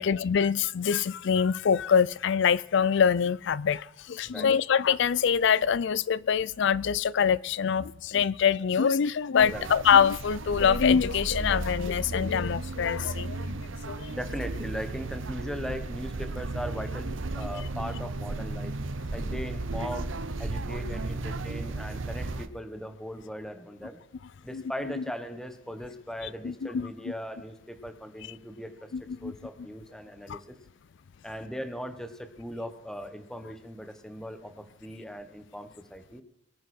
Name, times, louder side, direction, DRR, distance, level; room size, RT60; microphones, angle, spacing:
voice 1, 0.0-14.1 24.5-24.6 25.0-25.1 26.4-26.9 28.9-29.3 30.3-30.4, left 7 dB, 65° left, 0.4 m, -25 dB
sound 1, 9.4-22.5, right 2 dB, 75° right, 0.9 m, -34 dB
voice 2, 14.1-18.7 19.1-20.1 20.4-24.0 24.4-28.9 29.2-30.6 31.2-36.2, equal, 5° left, 1.3 m, -39 dB
23.0 x 9.3 x 4.4 m
head